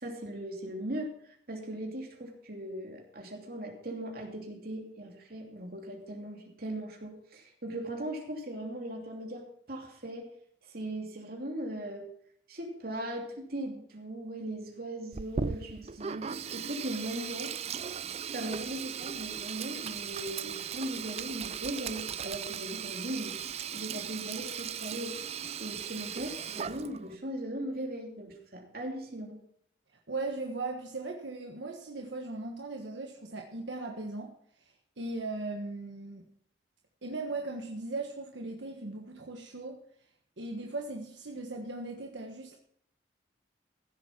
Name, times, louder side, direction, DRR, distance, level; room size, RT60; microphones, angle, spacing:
voice 1, 0.0-1.1 1.5-10.3 10.6-12.1 12.5-17.5 18.3-23.4 23.7-25.2 25.6-29.4, right 1 dB, 55° right, 1 dB, 2.9 m, -39 dB
Sink (filling or washing), 15.1-27.2, right 7 dB, 35° right, 0.4 m, -38 dB
voice 2, 30.1-34.3 35.0-36.2 37.0-39.8 40.4-42.6, right 2 dB, 80° right, 2 dB, 1.4 m, -38 dB
15.5 x 7.5 x 5.9 m, 0.66 s
head